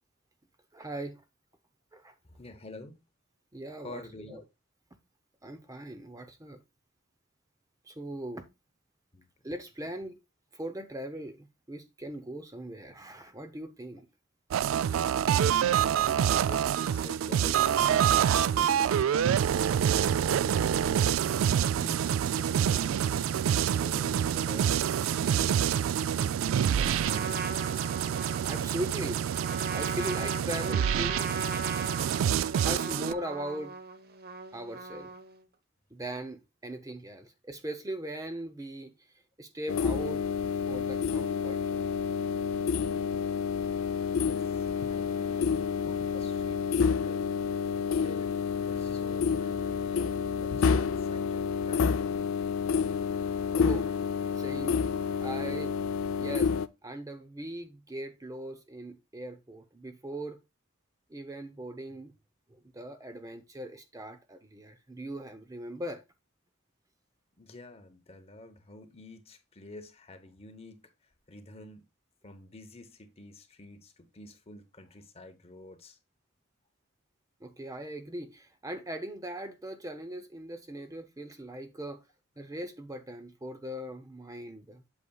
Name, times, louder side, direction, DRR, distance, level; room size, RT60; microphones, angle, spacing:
voice 1, 0.7-1.2 1.9-2.1 3.5-4.0 4.3-4.4 5.4-6.6 7.9-8.5 9.4-10.2 10.5-14.1 28.4-29.2 29.7-31.6 32.6-33.7 34.5-35.1 35.9-38.9 39.4-40.3 40.7-41.9 53.6-53.9 54.4-54.8 55.2-55.7 56.2-56.5 56.8-60.4 61.1-62.1 62.5-66.0 77.4-82.0 82.4-84.9, right 1 dB, 15° right, 0.7 m, -39 dB
voice 2, 2.2-3.0 3.8-4.4 9.1-9.3 15.3-19.4 20.3-21.0 21.6-25.7 26.1-27.5 36.7-36.8 44.2-47.3 47.8-50.1 50.4-51.9 67.4-71.8 72.2-76.0 80.7-80.9, left 2 dB, 30° left, 0.9 m, -49 dB
sound 1, 14.5-33.1, right 9 dB, 70° right, 0.3 m, -27 dB
Trumpet, 26.8-35.4, right 3 dB, 50° right, 0.8 m, -39 dB
sound 2, 39.7-56.7, left 6 dB, 80° left, 0.5 m, -29 dB
8.2 x 6.9 x 2.3 m
head